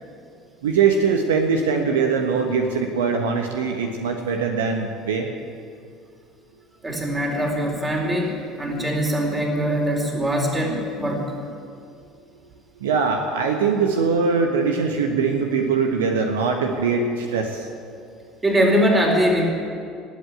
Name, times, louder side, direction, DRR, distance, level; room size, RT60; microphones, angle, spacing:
voice 1, 0.6-5.3 12.8-17.7, right 5 dB, 70° right, 4 dB, 1.2 m, -22 dB
voice 2, 6.8-11.3 18.4-19.5, equal, 20° right, 0 dB, 4.3 m, -22 dB
19.0 x 8.5 x 8.9 m, 2.4 s
figure-of-eight pair, 60°, 0 cm